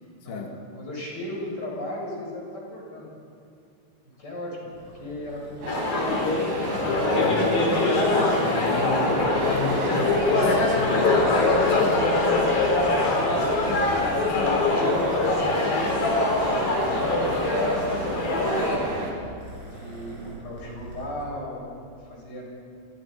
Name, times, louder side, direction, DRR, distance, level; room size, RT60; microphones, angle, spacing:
voice 1, 0.2-0.5 6.8-7.5 8.4-12.1 13.7-13.9 14.3-14.7, left 4 dB, 85° left, 2 dB, 4.3 m, -34 dB
voice 2, 0.8-3.1 4.0-4.7 5.0-6.2 6.5-6.8 7.2-7.9 8.9-9.3 12.2-12.4 13.0-14.0 14.7-16.4 16.9-19.0 19.7-21.6 22.0-22.4, left 1 dB, 20° left, -4 dB, 8.4 m, -37 dB
Purr, 4.7-21.2, equal, 25° right, 8.2 m, -43 dB
sound 1, 5.6-19.1, right 2 dB, 85° right, 6.4 m, -31 dB
sound 2, 5.7-18.8, left 3 dB, 55° left, 5.4 m, -23 dB
30.0 x 25.5 x 5.8 m, 2.4 s
omnidirectional pair, 5.2 m